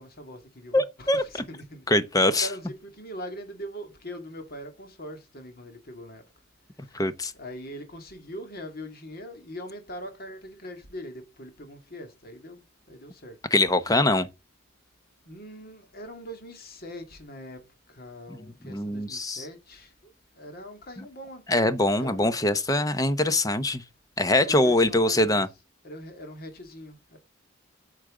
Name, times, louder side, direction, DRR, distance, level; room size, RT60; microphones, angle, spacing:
voice 1, 0.0-1.8 2.4-6.2 6.8-7.0 7.3-13.4 15.3-17.6 17.9-20.1 20.4-22.6 24.4-25.4 25.8-27.2, equal, 45° left, 2.2 m, -42 dB
voice 2, 0.7-1.2 1.9-2.5 6.9-7.3 13.5-14.3 18.7-19.5 21.5-23.8 24.2-25.5, left 1 dB, 15° left, 0.7 m, -23 dB
8.6 x 6.5 x 3.7 m
head